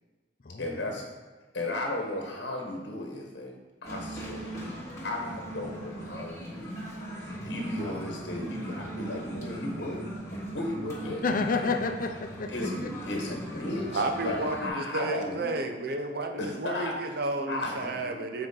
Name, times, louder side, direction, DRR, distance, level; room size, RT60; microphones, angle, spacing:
voice 1, 0.6-1.1 1.5-3.5 3.8-4.5 5.0-6.8 7.1-10.1 10.5-11.2 12.5-15.5 16.4-17.2 17.5-18.0, left 1 dB, 70° left, 1 dB, 1.1 m, -35 dB
sound 1, 3.8-14.7, right 1 dB, 20° left, 1.9 m, -39 dB
voice 2, 11.2-12.5 12.8-12.9 13.3-13.4 17.7-17.8 18.0-18.3, left 4 dB, 50° left, 6 dB, 0.6 m, -30 dB
voice 3, 13.9-18.5, right 2 dB, 60° right, 5 dB, 0.7 m, -32 dB
7.7 x 4.4 x 4.0 m, 1.3 s
head